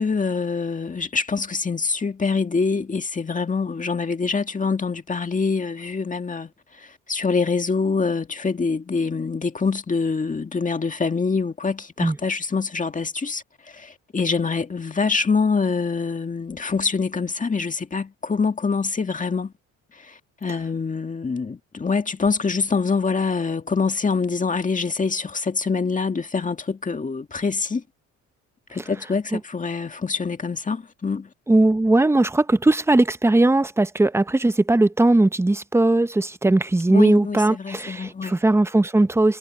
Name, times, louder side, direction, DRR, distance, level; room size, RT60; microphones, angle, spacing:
voice 1, 0.0-6.5 6.8-19.5 20.0-27.8 28.7-31.3 36.9-38.4, left 4 dB, 25° left, 2.0 m, -25 dB
voice 2, 31.5-39.4, right 2 dB, 10° right, 0.8 m, -19 dB
cardioid pair, 90°, 30 cm